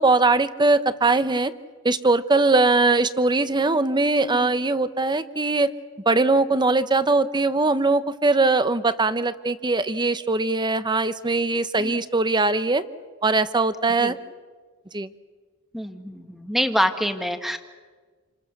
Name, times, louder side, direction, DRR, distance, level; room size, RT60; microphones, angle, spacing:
voice 1, 0.0-1.5 1.8-5.7 6.1-12.8 13.2-14.1 14.9-15.1, right 3 dB, 20° right, 12 dB, 0.9 m, -21 dB
voice 2, 4.1-4.5 11.8-12.0 14.0-14.1 15.7-17.6, equal, ahead, 7 dB, 1.6 m, -26 dB
29.0 x 25.5 x 6.7 m, 1.5 s
head